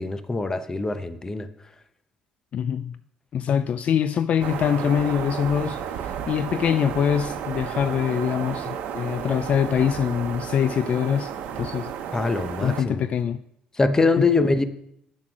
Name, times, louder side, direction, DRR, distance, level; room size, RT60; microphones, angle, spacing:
voice 1, 0.0-1.5 12.1-13.1 13.8-14.6, left 3 dB, 20° left, 0.8 m, -23 dB
voice 2, 2.5-3.0 3.3-11.9 12.6-13.4 14.2-14.3, left 8 dB, 55° left, 0.3 m, -24 dB
sound 1, 4.4-12.8, right 8 dB, 80° right, 0.9 m, -33 dB
7.3 x 6.2 x 6.2 m
cardioid pair, 85°, 3 cm